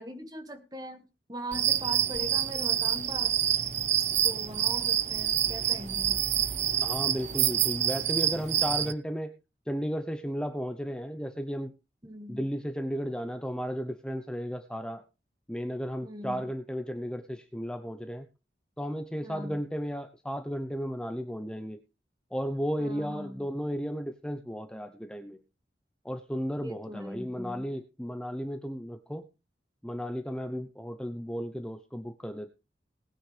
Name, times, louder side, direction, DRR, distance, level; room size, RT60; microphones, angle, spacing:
voice 1, 0.0-3.4 4.2-6.2 12.0-12.5 16.0-16.4 19.2-19.6 22.8-23.4 26.6-27.6, equal, 20° right, 7 dB, 1.9 m, -41 dB
sound 1, 1.5-8.9, right 10 dB, 40° right, 0.7 m, -27 dB
voice 2, 6.8-9.3 9.7-11.7 12.3-15.0 15.5-18.3 18.8-21.8 22.3-25.4 26.0-29.2 29.8-32.5, equal, 5° left, 7 dB, 0.8 m, -34 dB
19.5 x 9.8 x 3.4 m, 0.30 s
head